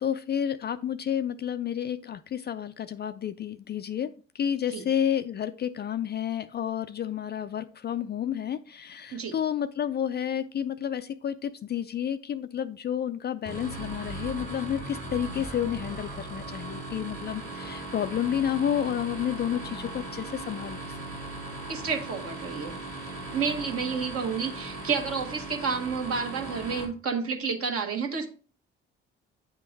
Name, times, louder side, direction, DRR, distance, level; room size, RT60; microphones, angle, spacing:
voice 1, 0.0-20.9, left 9 dB, 35° left, 12 dB, 0.4 m, -30 dB
sound 1, 13.4-26.8, right 2 dB, 85° right, 2.2 m, -38 dB
voice 2, 21.7-22.7 23.3-28.3, right 5 dB, 50° right, 3 dB, 1.4 m, -30 dB
8.7 x 3.6 x 3.9 m, 0.39 s
hypercardioid pair, 45°, 30 cm